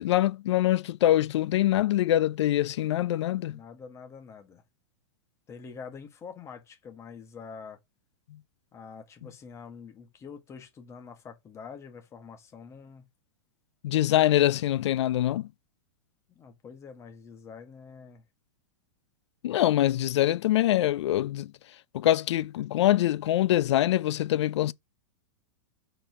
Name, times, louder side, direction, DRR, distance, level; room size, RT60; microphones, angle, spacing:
voice 1, 0.0-3.6 13.8-15.5 19.4-21.5 21.9-24.7, left 13 dB, 75° left, 0.5 m, -24 dB
voice 2, 3.5-4.6 5.5-7.8 8.7-13.1 16.3-18.2, left 6 dB, 20° left, 1.7 m, -45 dB
5.0 x 4.3 x 6.1 m
supercardioid pair, 150°, 15 cm